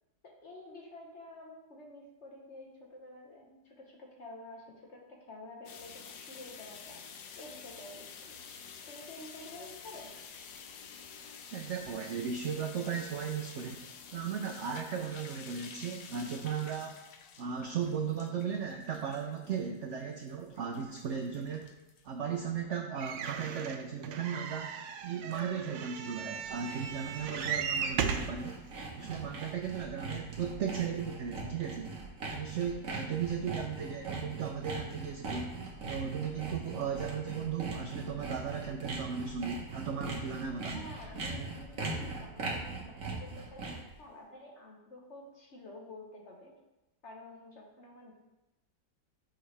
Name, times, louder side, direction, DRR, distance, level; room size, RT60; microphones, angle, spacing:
voice 1, 0.2-7.0 7.4-8.4 8.9-10.1 40.7-46.5 47.0-48.1, left 2 dB, 45° left, -1 dB, 1.2 m, -50 dB
sound 1, 5.7-22.5, left 6 dB, 75° left, 1.2 m, -50 dB
voice 2, 11.5-13.8 14.1-17.0 17.4-21.7 22.0-24.7 25.0-28.6 28.9-32.0 32.3-35.5 35.9-40.8 41.3-41.5 42.1-42.2, right 7 dB, 70° right, 3 dB, 0.6 m, -36 dB
sound 2, 23.0-28.4 29.1-29.2 29.4-29.5, right 7 dB, 90° right, 1.3 m, -36 dB
Sawing, 26.1-43.9, right 3 dB, 50° right, 1.5 m, -41 dB
7.9 x 5.7 x 3.3 m, 0.98 s
omnidirectional pair, 1.9 m